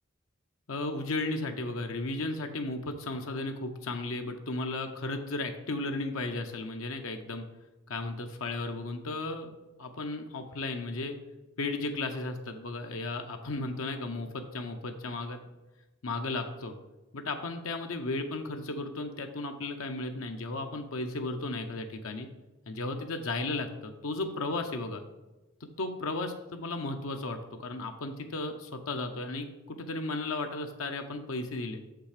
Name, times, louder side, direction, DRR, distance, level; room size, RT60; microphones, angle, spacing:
voice 1, 0.7-7.4 7.9-9.5 9.8-11.2 11.6-15.4 16.0-16.7 17.1-22.3 22.7-25.0 25.8-31.8, left 2 dB, 85° left, 5 dB, 0.7 m, -35 dB
6.5 x 5.8 x 5.0 m, 1.1 s
head